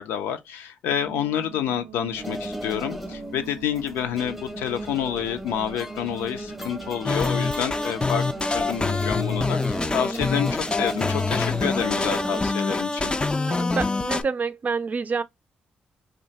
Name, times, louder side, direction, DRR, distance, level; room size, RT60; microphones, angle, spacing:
voice 1, 0.0-13.1, left 9 dB, 90° left, 0.5 m, -29 dB
sound 1, 0.9-13.3, right 9 dB, 90° right, 0.6 m, -45 dB
sound 2, 2.1-12.4, equal, ahead, 0.8 m, -35 dB
sound 3, 7.1-14.2, left 3 dB, 25° left, 0.4 m, -25 dB
voice 2, 13.5-15.2, right 5 dB, 45° right, 0.4 m, -27 dB
2.8 x 2.2 x 3.9 m
supercardioid pair, 60°, 4 cm